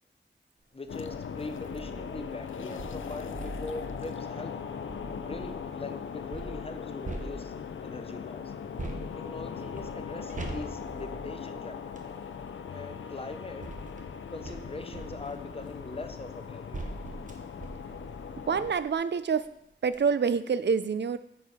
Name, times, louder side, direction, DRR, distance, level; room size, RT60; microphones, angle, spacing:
voice 1, 0.7-4.5 5.2-7.5 7.8-8.5 9.0-12.1 12.7-13.6 14.3-16.9, left 3 dB, 30° left, 7 dB, 0.8 m, -41 dB
sound 1, 0.9-18.7, left 6 dB, 90° left, 0.6 m, -39 dB
sound 2, 0.9-1.2 1.7-5.7 6.3-7.9 8.8-12.1 13.1-19.0 19.4-19.5 19.8-20.0, right 2 dB, 40° right, 1.0 m, -43 dB
voice 2, 18.4-19.5 19.8-21.2, right 6 dB, 65° right, 13 dB, 0.5 m, -27 dB
8.9 x 4.8 x 5.4 m, 0.81 s
wide cardioid pair, 90°, 20 cm